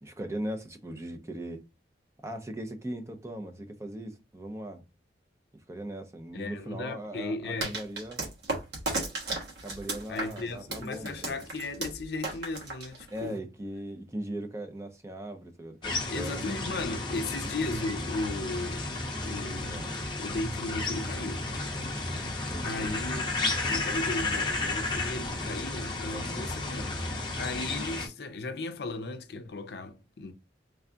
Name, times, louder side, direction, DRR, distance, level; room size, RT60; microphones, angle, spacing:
voice 1, 0.0-1.6 2.2-4.8 5.7-8.2 9.6-11.4 13.1-16.4 19.7-19.9 22.5-23.0 26.1-26.5, right 1 dB, 15° right, 0.6 m, -39 dB
voice 2, 6.3-7.8 10.1-13.4 16.1-18.9 19.2-19.9 20.2-21.5 22.6-23.3 23.7-27.0 27.4-30.3, left 2 dB, 60° left, 0.5 m, -36 dB
sound 1, 7.6-13.4, right 2 dB, 70° right, 1.2 m, -35 dB
sound 2, 15.8-28.1, left 2 dB, 25° left, 0.7 m, -33 dB
3.4 x 2.3 x 3.8 m
head